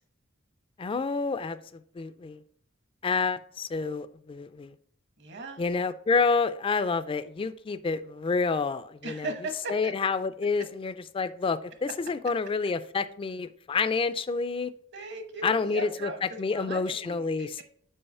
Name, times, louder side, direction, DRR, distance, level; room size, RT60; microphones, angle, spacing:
voice 1, 0.8-1.6 1.9-2.4 3.0-4.7 5.6-9.3 9.7-14.7 15.4-17.6, left 4 dB, 25° left, 12 dB, 0.3 m, -28 dB
voice 2, 5.2-5.6 9.0-9.9 14.9-17.6, right 2 dB, 60° right, 6 dB, 1.1 m, -38 dB
5.5 x 4.7 x 5.5 m, 0.63 s
head